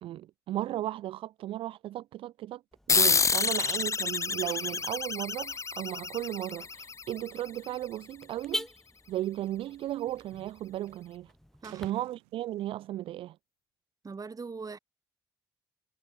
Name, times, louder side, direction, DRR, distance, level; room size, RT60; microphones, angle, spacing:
voice 1, 0.0-2.6 2.9-8.7 9.1-11.3 11.7-13.4, right 13 dB, 65° right, 0.5 m, -35 dB
Car / Alarm, 2.7-11.9, equal, 5° left, 4.5 m, -46 dB
sound 1, 2.9-7.9, left 5 dB, 30° left, 0.7 m, -29 dB
sound 2, 3.1-3.2 3.8-5.7 6.9-7.1 7.8-7.9 8.1-8.5 9.2-10.2 10.9-11.2 11.6-13.1, right 38 dB, 85° right, 3.9 m, -57 dB
voice 2, 14.0-14.8, right 4 dB, 35° right, 4.7 m, -40 dB
hypercardioid pair, 50°, 10 cm